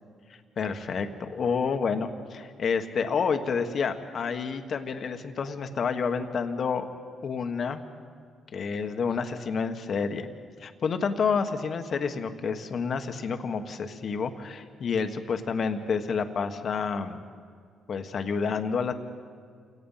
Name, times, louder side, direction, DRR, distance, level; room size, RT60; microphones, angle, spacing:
voice 1, 0.6-6.8 7.2-7.8 8.5-10.3 10.6-17.2 17.9-18.9, left 5 dB, 55° left, 7 dB, 1.4 m, -29 dB
28.5 x 17.5 x 5.7 m, 2.1 s
cardioid pair, 90°, 0 cm